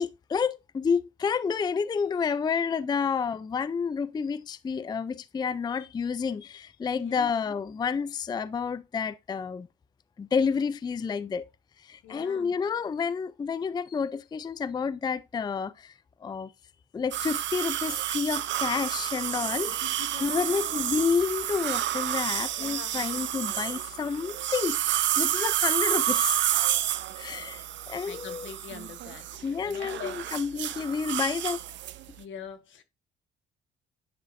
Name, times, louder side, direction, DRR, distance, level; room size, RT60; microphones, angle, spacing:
voice 1, 0.0-9.7 10.2-11.4 11.8-15.9 16.2-16.5 16.9-26.4 27.2-28.5 29.4-31.6, left 6 dB, 20° left, 0.3 m, -30 dB
voice 2, 6.9-7.3 12.0-12.5 19.8-20.5 22.6-23.0 28.1-30.2 32.2-32.8, left 8 dB, 75° left, 1.3 m, -43 dB
sound 1, 17.1-32.0, right 12 dB, 70° right, 0.6 m, -30 dB
9.8 x 4.9 x 2.5 m
cardioid pair, 90°, 20 cm